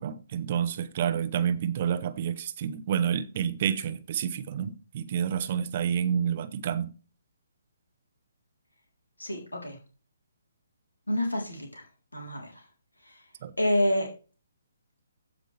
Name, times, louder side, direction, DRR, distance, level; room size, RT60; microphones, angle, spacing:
voice 1, 0.0-6.9 13.4-13.5, right 8 dB, 40° right, 0.9 m, -29 dB
voice 2, 9.2-9.8 11.1-11.8 12.1-12.6 13.0-13.2 13.6-14.1, left 1 dB, 80° left, 3.6 m, -28 dB
15.5 x 5.2 x 3.4 m
figure-of-eight pair, 135°, 0 cm